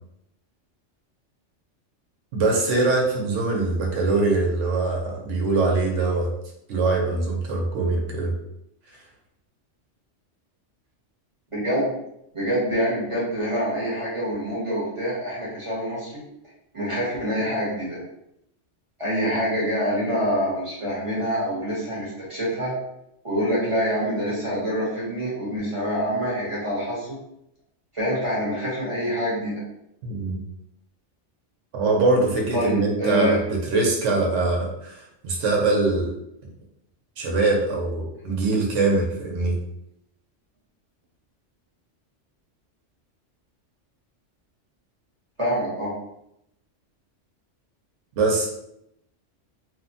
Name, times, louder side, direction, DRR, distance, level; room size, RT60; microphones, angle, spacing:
voice 1, 2.3-6.3 6.7-8.3 30.0-30.4 31.7-33.4 33.7-36.1 37.2-39.6 48.2-48.5, right 3 dB, 75° right, -1 dB, 0.9 m, -23 dB
voice 2, 11.5-11.9 12.3-16.2 16.7-18.0 19.0-22.7 23.2-27.2 27.9-29.5 32.5-33.4 45.4-45.9, equal, 30° right, -6 dB, 0.8 m, -26 dB
2.8 x 2.1 x 2.6 m, 0.78 s
omnidirectional pair, 1.3 m